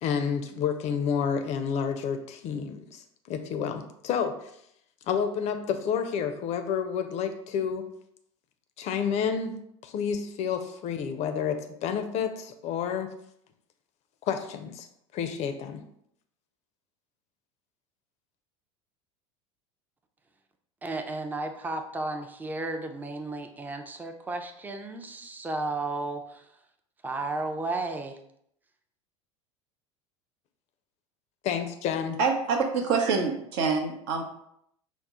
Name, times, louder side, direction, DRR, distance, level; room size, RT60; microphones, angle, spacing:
voice 1, 0.0-4.5 5.0-7.9 8.8-13.1 14.3-14.9 15.1-15.8 31.4-32.2, left 7 dB, 45° left, 8 dB, 0.5 m, -30 dB
voice 2, 20.8-26.5 27.0-28.2, right 2 dB, 10° right, 5 dB, 0.4 m, -33 dB
voice 3, 32.2-34.2, right 5 dB, 65° right, 4 dB, 0.7 m, -26 dB
4.3 x 2.0 x 3.6 m, 0.74 s
hypercardioid pair, 80°, 16 cm